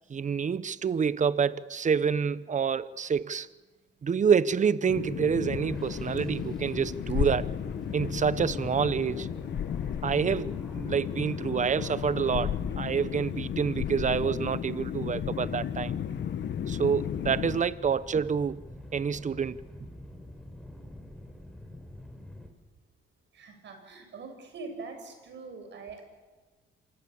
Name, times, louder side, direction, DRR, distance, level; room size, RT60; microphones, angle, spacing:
voice 1, 0.1-3.5 4.0-7.5 7.9-9.3 10.0-15.9 16.7-18.6 18.9-19.6, right 6 dB, 40° right, 1.0 m, -27 dB
sound 1, 4.9-17.6, left 9 dB, 65° left, 1.2 m, -34 dB
sound 2, 5.4-22.5, left 1 dB, 5° left, 4.8 m, -44 dB
voice 2, 23.3-26.0, right 4 dB, 65° right, 6.9 m, -43 dB
27.0 x 25.0 x 7.2 m
cardioid pair, 90°, 20 cm